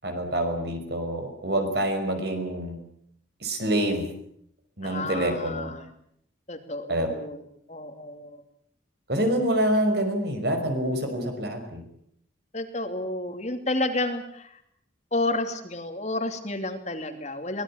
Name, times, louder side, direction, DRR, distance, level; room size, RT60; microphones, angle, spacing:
voice 1, 0.0-2.8 3.4-4.1 4.8-5.7 6.9-7.1 9.1-11.8, right 1 dB, 55° right, 6 dB, 5.7 m, -26 dB
voice 2, 4.8-5.9 6.5-7.4 7.7-8.4 12.5-14.5 15.1-17.6, left 2 dB, 35° left, 7 dB, 2.7 m, -31 dB
23.5 x 19.5 x 8.8 m, 0.71 s
head